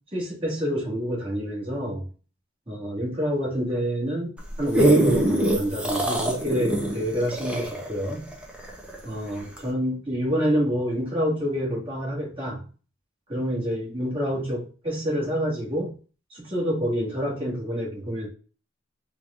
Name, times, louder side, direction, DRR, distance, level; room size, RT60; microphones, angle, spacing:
voice 1, 0.1-2.0 2.7-4.3 4.6-8.3 9.0-12.6 13.3-15.9 16.3-18.3, equal, 25° right, -5 dB, 2.1 m, -27 dB
sound 1, 4.4-9.0 9.6-9.7, right 1 dB, 5° right, 0.7 m, -23 dB
4.7 x 2.6 x 3.5 m, 0.37 s
head